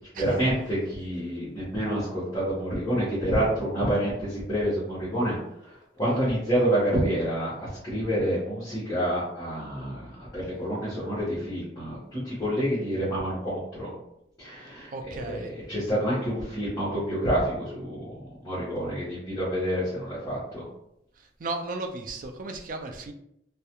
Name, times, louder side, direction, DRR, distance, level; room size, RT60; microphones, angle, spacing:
voice 1, 0.1-13.9 14.4-18.1 18.4-20.6, equal, 20° left, -10 dB, 0.8 m, -28 dB
voice 2, 14.9-15.5 21.2-23.1, right 3 dB, 45° right, 4 dB, 0.3 m, -35 dB
2.3 x 2.1 x 2.8 m, 0.78 s
head